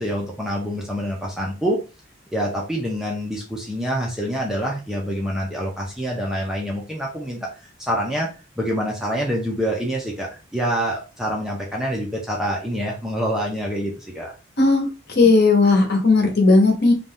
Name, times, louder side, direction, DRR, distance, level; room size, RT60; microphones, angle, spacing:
voice 1, 0.0-1.8 2.3-8.3 8.6-14.3, equal, ahead, -2 dB, 0.4 m, -26 dB
voice 2, 14.6-16.9, left 3 dB, 50° left, 2 dB, 0.8 m, -16 dB
2.6 x 2.2 x 3.4 m, 0.31 s
head